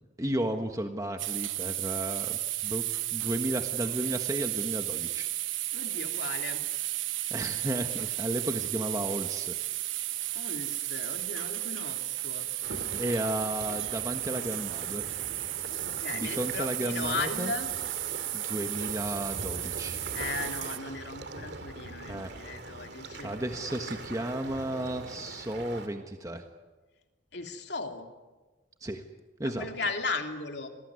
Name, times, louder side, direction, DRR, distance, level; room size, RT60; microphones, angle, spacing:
voice 1, 0.0-2.8 3.1-5.3 7.3-9.5 10.0-10.4 12.6-15.0 16.1-17.5 18.3-20.0 22.1-22.3 23.2-26.4 28.8-29.0 29.4-29.7, right 1 dB, 15° right, 5 dB, 1.4 m, -33 dB
sound 1, 1.2-20.8, right 15 dB, 85° right, 1.1 m, -34 dB
voice 2, 5.7-6.6 10.3-12.5 15.7-17.7 20.1-23.3 27.3-28.1 29.4-30.7, left 3 dB, 60° left, 4 dB, 3.1 m, -37 dB
sound 2, 12.6-25.9, right 2 dB, 60° right, 2.4 m, -42 dB
27.0 x 20.5 x 9.7 m, 1.2 s
head